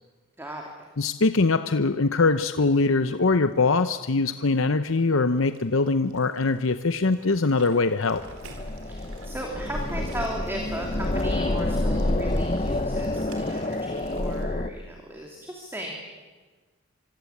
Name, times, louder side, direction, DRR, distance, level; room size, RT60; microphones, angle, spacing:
voice 1, 1.0-8.2, left 3 dB, 70° left, 10 dB, 0.8 m, -22 dB
sound 1, 2.4-14.4, right 3 dB, 85° right, 4.6 m, -52 dB
sound 2, 7.5-13.8, right 1 dB, 65° right, 7.0 m, -55 dB
sound 3, 8.1-14.7, left 1 dB, 30° left, 0.9 m, -28 dB
voice 2, 8.8-15.9, right 1 dB, 10° right, 0 dB, 3.0 m, -36 dB
25.5 x 24.5 x 8.6 m, 1.4 s
head